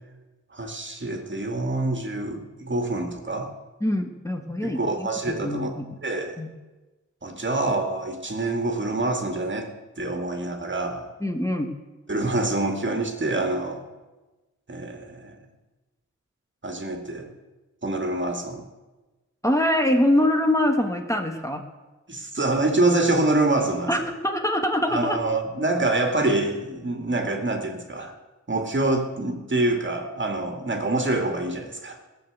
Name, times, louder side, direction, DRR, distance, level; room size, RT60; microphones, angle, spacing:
voice 1, 0.5-3.5 4.6-5.7 6.0-6.4 7.2-9.7 10.0-11.1 12.1-13.8 14.7-15.4 16.6-17.3 17.8-18.7 22.1-23.9 24.9-28.1 28.5-32.0, right 2 dB, 40° right, 4 dB, 2.1 m, -26 dB
voice 2, 3.8-5.1 5.4-6.0 6.4-6.5 11.2-11.7 19.4-21.6 23.9-25.2, left 1 dB, 10° left, 3 dB, 1.4 m, -24 dB
17.0 x 7.1 x 8.1 m, 1.2 s
wide cardioid pair, 65°, 30 cm